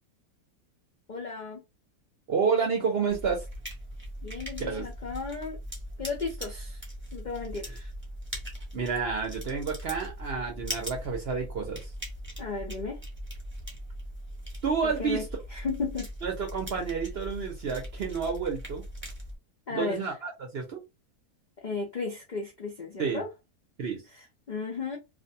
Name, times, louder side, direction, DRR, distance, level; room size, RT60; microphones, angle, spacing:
voice 1, 1.1-1.6 4.2-5.6 6.0-6.8 7.1-7.9 12.4-13.0 14.8-16.1 19.7-20.1 21.6-23.3 24.1-25.0, left 4 dB, 80° left, 0.4 m, -35 dB
voice 2, 2.3-3.5 4.6-4.9 8.7-11.9 14.6-15.2 16.2-18.8 19.7-20.8 23.0-23.2 23.8-24.0, right 5 dB, 60° right, 0.7 m, -30 dB
sound 1, 3.1-19.4, equal, 10° right, 0.6 m, -40 dB
2.5 x 2.1 x 2.6 m
omnidirectional pair, 1.6 m